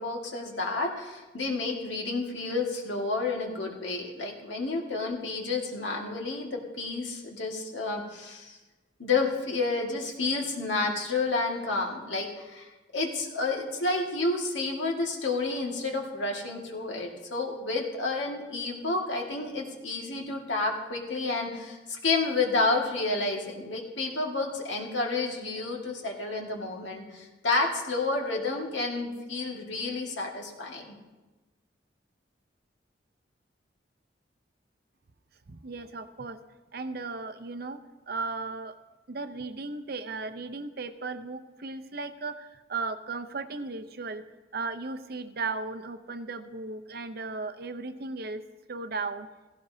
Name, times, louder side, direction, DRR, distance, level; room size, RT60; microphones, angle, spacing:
voice 1, 0.0-8.6 9.0-31.0, left 3 dB, 85° left, 0 dB, 2.0 m, -30 dB
voice 2, 35.5-36.4 36.7-37.8 38.1-38.8 39.1-44.2 44.5-48.4 48.7-49.3, right 3 dB, 55° right, 9 dB, 0.7 m, -36 dB
16.5 x 16.0 x 2.8 m, 1.2 s
head